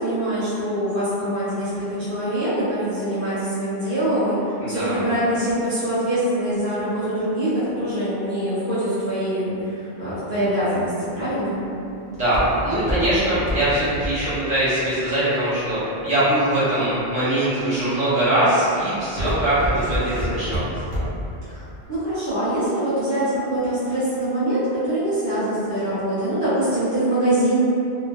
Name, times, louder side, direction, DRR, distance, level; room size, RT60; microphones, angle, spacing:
voice 1, 0.0-4.4 4.7-11.6 21.4-27.6, right 1 dB, 60° right, -15 dB, 1.5 m, -24 dB
voice 2, 4.6-5.0 12.1-20.7, right 1 dB, 10° right, -15 dB, 0.8 m, -22 dB
Walk footsteps, 11.1-16.2 16.8-17.2 17.8-18.1 18.5-21.3 21.7-21.8, equal, 25° left, 0.6 m, -28 dB
2.9 x 2.1 x 2.3 m, 2.8 s
omnidirectional pair, 1.0 m